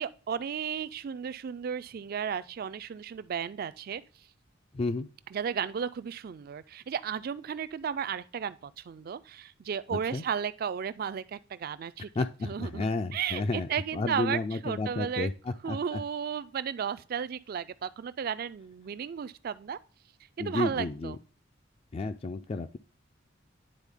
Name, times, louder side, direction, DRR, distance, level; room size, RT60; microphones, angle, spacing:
voice 1, 0.0-4.0 5.3-12.1 12.4-12.9 13.1-15.3 15.6-19.8 20.4-21.2, right 7 dB, 50° right, 0.3 m, -34 dB
voice 2, 4.7-5.1 9.9-10.2 12.2-16.0 20.4-21.2 21.9-22.8, left 3 dB, 30° left, 0.3 m, -32 dB
9.9 x 4.0 x 3.5 m
head